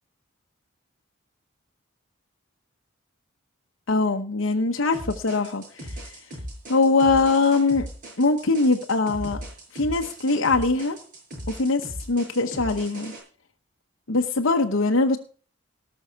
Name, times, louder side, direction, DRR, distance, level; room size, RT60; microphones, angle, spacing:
voice 1, 3.9-6.2 6.7-7.9 8.2-9.4 9.7-11.0 11.5-11.8 12.1-13.1 14.1-15.2, left 3 dB, 75° left, 3 dB, 0.9 m, -22 dB
sound 1, 4.9-13.2, equal, 40° right, 6.4 m, -38 dB
19.0 x 6.3 x 4.6 m, 0.42 s
head